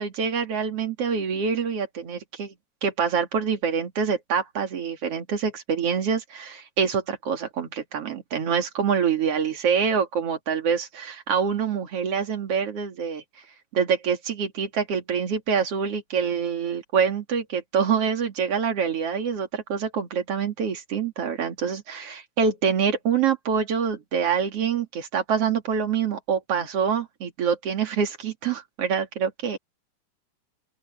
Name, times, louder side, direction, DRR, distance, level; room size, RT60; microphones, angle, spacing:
voice 1, 0.0-2.5 2.8-13.2 13.7-29.6, right 6 dB, 45° right, 3.0 m, -26 dB
open air
omnidirectional pair, 4.0 m